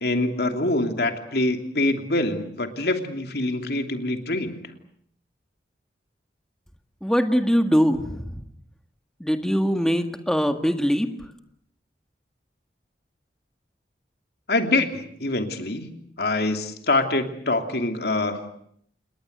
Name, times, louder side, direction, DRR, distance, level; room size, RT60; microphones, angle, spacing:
voice 1, 0.0-4.6 14.5-15.9 16.2-18.6, left 2 dB, 65° left, 6 dB, 3.0 m, -25 dB
voice 2, 7.0-8.4 9.2-11.1, equal, 5° left, 6 dB, 1.8 m, -22 dB
28.5 x 21.0 x 8.1 m, 0.68 s
head